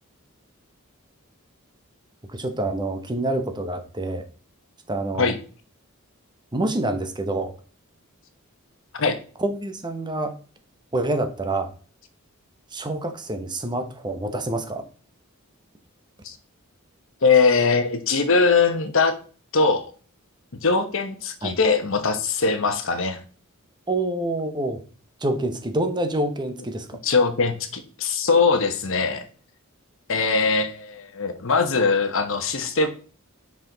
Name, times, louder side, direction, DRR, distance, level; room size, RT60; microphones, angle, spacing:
voice 1, 2.3-4.2 4.9-5.3 6.5-7.5 9.4-10.3 10.9-11.7 12.7-14.8 21.4-21.6 23.9-24.8 25.2-27.0, right 2 dB, 20° right, 7 dB, 0.8 m, -27 dB
voice 2, 17.2-19.1 19.5-19.9 20.6-23.2 27.0-29.2 30.1-32.9, left 4 dB, 60° left, 8 dB, 1.0 m, -21 dB
5.8 x 4.9 x 3.9 m, 0.39 s
head